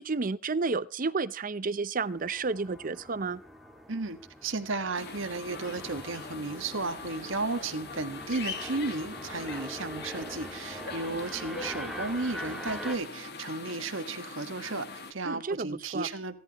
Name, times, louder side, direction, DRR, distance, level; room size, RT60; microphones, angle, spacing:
voice 1, 0.0-3.4 15.2-16.1, right 4 dB, 40° right, 16 dB, 0.6 m, -31 dB
sound 1, 2.0-13.0, equal, ahead, 1.7 m, -43 dB
voice 2, 3.9-16.4, right 3 dB, 70° right, 8 dB, 1.5 m, -34 dB
sound 2, 4.9-15.1, left 4 dB, 50° left, 1.8 m, -42 dB
26.0 x 11.0 x 3.0 m, 0.38 s
head